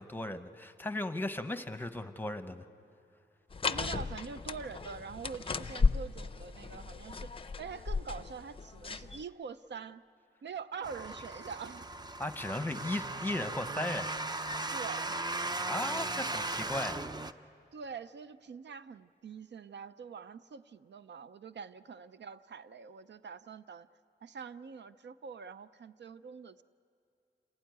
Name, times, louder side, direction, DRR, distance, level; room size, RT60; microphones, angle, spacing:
voice 1, 0.0-2.6 12.2-14.1 15.6-17.1, left 1 dB, 10° left, 9 dB, 0.9 m, -36 dB
sound 1, 3.5-9.2, left 4 dB, 30° left, 0.5 m, -34 dB
voice 2, 3.6-10.0 10.4-11.9 14.7-15.2 17.7-23.9 24.2-26.6, right 6 dB, 70° right, 13 dB, 0.5 m, -45 dB
sound 2, 10.8-17.3, right 2 dB, 20° right, 0.5 m, -37 dB
28.0 x 17.0 x 9.3 m, 2.6 s
wide cardioid pair, 125°, 19 cm